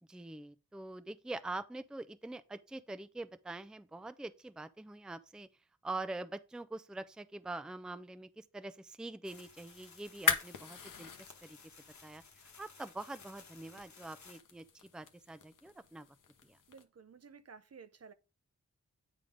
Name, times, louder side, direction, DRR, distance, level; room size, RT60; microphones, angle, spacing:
voice 1, 0.1-5.5 5.8-11.1 11.4-11.6 12.0-12.2 12.6-14.6 14.9-16.1 16.4-16.6, right 2 dB, ahead, 0.5 m, -44 dB
sound 1, 9.2-14.4, left 5 dB, 65° left, 1.1 m, -57 dB
sound 2, 10.1-16.8, left 6 dB, 85° left, 0.8 m, -40 dB
voice 2, 16.7-18.1, right 5 dB, 50° right, 0.7 m, -54 dB
8.7 x 3.7 x 4.9 m
cardioid pair, 45°, 31 cm